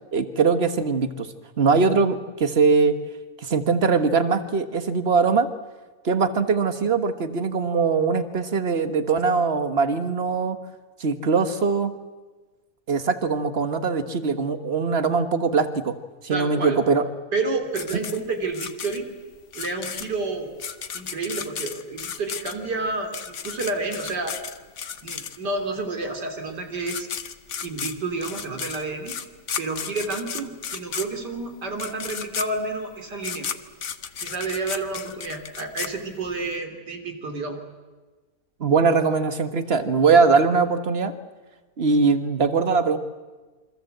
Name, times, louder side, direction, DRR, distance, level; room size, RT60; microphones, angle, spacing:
voice 1, 0.1-1.3 1.6-3.0 3.4-5.5 6.0-10.6 11.0-11.9 12.9-15.9 16.2-17.0 38.6-41.1 41.8-43.0, right 4 dB, 40° right, 10 dB, 1.5 m, -21 dB
voice 2, 16.3-16.8 17.3-19.1 19.6-20.6 20.9-24.4 25.0-27.1 27.6-29.2 29.6-33.5 34.2-37.6, right 3 dB, 90° right, 5 dB, 3.6 m, -30 dB
sound 1, 17.7-25.7 26.5-26.6 26.8-36.5, left 7 dB, 50° left, 1.2 m, -34 dB
27.5 x 24.0 x 7.9 m, 1.3 s
omnidirectional pair, 1.8 m